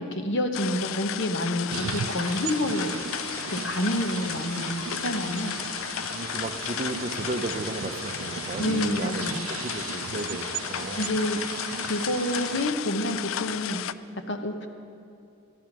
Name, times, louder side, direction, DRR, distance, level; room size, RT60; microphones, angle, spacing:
voice 1, 0.0-2.9 3.5-5.6 8.6-9.5 11.0-11.4 11.8-13.8 14.3-14.7, left 1 dB, 60° left, 5 dB, 1.0 m, -28 dB
sound 1, 0.5-13.9, left 11 dB, 80° left, 0.3 m, -34 dB
sound 2, 1.7-12.7, right 9 dB, 85° right, 0.3 m, -37 dB
sound 3, 2.4-11.4, equal, 30° left, 1.4 m, -50 dB
voice 2, 6.1-11.1, right 2 dB, 35° right, 8 dB, 0.5 m, -34 dB
13.0 x 10.5 x 6.0 m, 2.5 s
head